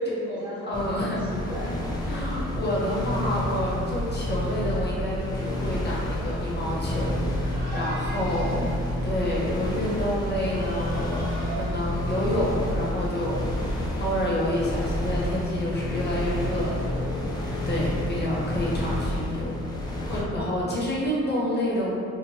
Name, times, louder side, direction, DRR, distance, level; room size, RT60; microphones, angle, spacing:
voice 1, 0.0-1.8 8.3-9.2 20.5-20.8, equal, 15° right, -10 dB, 1.3 m, -35 dB
voice 2, 0.7-1.2 2.1-8.7 9.0-19.6 20.0-21.9, equal, 35° left, -6 dB, 0.9 m, -29 dB
sound 1, 0.7-20.2, left 1 dB, 15° left, 0.6 m, -29 dB
sound 2, 7.4-8.9 10.4-12.2, equal, 35° right, 1.2 m, -39 dB
2.9 x 2.5 x 2.9 m, 2.4 s
cardioid pair, 90°, 30 cm